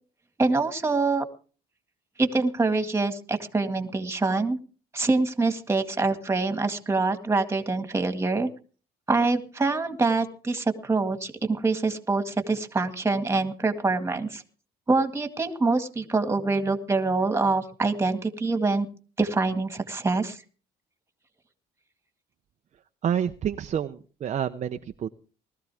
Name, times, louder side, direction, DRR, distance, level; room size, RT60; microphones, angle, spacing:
voice 1, 0.4-1.2 2.2-4.6 4.9-8.5 9.1-14.4 14.9-18.9 19.2-20.4, right 3 dB, 15° right, 7 dB, 2.0 m, -25 dB
voice 2, 23.0-25.1, right 9 dB, 45° right, 6 dB, 0.7 m, -28 dB
20.0 x 14.0 x 3.5 m, 0.38 s
cardioid pair, 110°, 17 cm